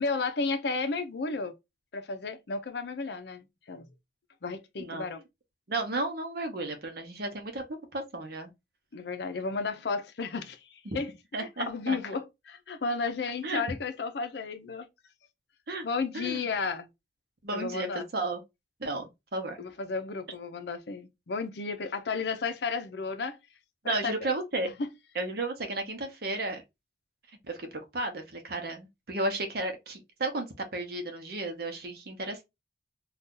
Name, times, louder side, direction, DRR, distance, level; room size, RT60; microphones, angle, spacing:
voice 1, 0.0-1.5 1.9-3.8 4.4-5.2 8.9-11.1 11.4-14.9 15.8-16.9 17.5-18.0 19.6-23.4 23.8-24.3 24.8-24.9, left 4 dB, 65° left, 0.5 m, -33 dB
voice 2, 5.7-7.6 7.9-8.5 10.9-11.0 11.3-12.0 13.4-13.6 15.7-15.8 16.1-16.4 17.4-18.4 18.8-19.6 23.8-24.7 25.1-26.6 27.4-30.5 30.7-32.4, right 2 dB, 55° right, 0.8 m, -33 dB
2.7 x 2.3 x 3.6 m
head